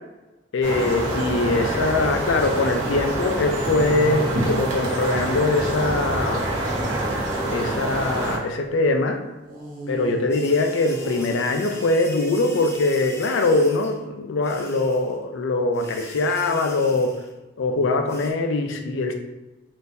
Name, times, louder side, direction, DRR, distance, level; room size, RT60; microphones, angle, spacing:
voice 1, 0.5-6.5 7.5-9.2 9.9-17.2 17.6-19.1, left 2 dB, 85° left, 5 dB, 0.4 m, -22 dB
sound 1, 0.6-8.4, right 1 dB, 85° right, 0.8 m, -26 dB
sound 2, 4.0-8.7 9.4-12.8, equal, 45° right, 0.6 m, -40 dB
sound 3, 10.3-14.0 14.4-15.2 15.7-17.3 18.1-18.3, left 2 dB, 15° left, 0.3 m, -41 dB
3.7 x 2.5 x 2.6 m, 1.1 s
head